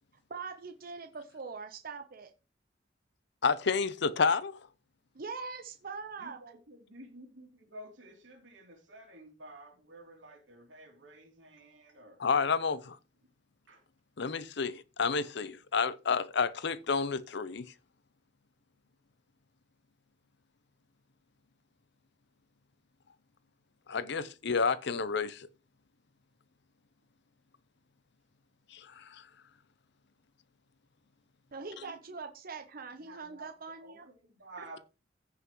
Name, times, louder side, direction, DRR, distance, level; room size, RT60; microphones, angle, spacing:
voice 1, 0.3-2.3 5.1-6.4 31.5-34.1, right 4 dB, 50° right, 0.9 m, -42 dB
voice 2, 3.4-4.6 12.2-13.0 14.2-17.7 23.9-25.5 28.7-29.2, left 5 dB, 65° left, 0.7 m, -30 dB
voice 3, 6.2-12.2 13.7-13.8 31.8-31.9 33.0-34.8, right 1 dB, 85° right, 3.0 m, -52 dB
15.5 x 5.7 x 3.1 m
head